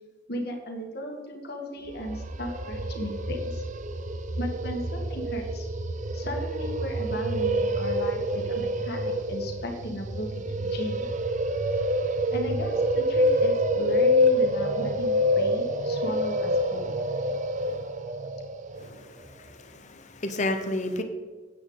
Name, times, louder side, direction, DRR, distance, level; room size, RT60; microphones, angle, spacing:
voice 1, 0.3-3.6 4.4-5.7 6.1-11.1 12.3-16.9, left 1 dB, 55° left, 2 dB, 1.9 m, -36 dB
sound 1, 1.9-18.9, equal, 40° right, 0.6 m, -27 dB
voice 2, 18.8-21.0, left 2 dB, 40° left, 6 dB, 1.1 m, -32 dB
9.7 x 8.8 x 4.0 m, 1.4 s
head